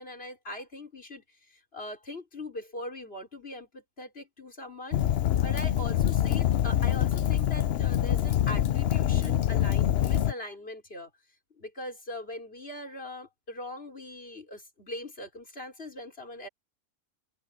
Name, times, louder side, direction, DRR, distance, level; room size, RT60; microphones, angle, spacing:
voice 1, 0.0-5.0 5.4-11.1 11.6-16.5, left 1 dB, 40° left, 5.4 m, -41 dB
Fire, 4.9-10.3, left 11 dB, 60° left, 0.7 m, -25 dB
omnidirectional pair, 1.5 m